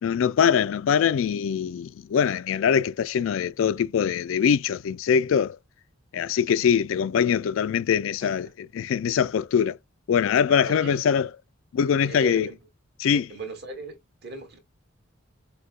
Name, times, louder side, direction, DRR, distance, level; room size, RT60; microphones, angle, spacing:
voice 1, 0.0-5.6 6.1-9.8 10.1-11.3 11.7-12.5 13.0-13.3, left 7 dB, 65° left, 0.3 m, -23 dB
voice 2, 10.6-11.0 12.1-12.6 13.1-14.6, right 4 dB, 55° right, 2.0 m, -38 dB
6.5 x 2.2 x 2.3 m
head